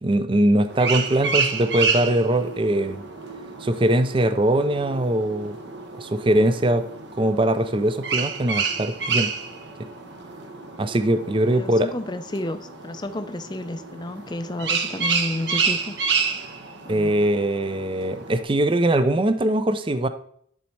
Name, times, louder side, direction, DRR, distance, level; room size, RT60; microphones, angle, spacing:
voice 1, 0.0-3.0 3.6-5.6 6.0-6.9 7.2-9.3 10.8-11.9 16.9-20.1, right 1 dB, 25° right, 9 dB, 0.5 m, -21 dB
sound 1, 0.7-18.4, right 5 dB, 60° right, 1.0 m, -29 dB
voice 2, 11.5-16.0 16.8-17.1, left 1 dB, 25° left, 10 dB, 0.5 m, -31 dB
10.5 x 4.1 x 4.6 m, 0.63 s
head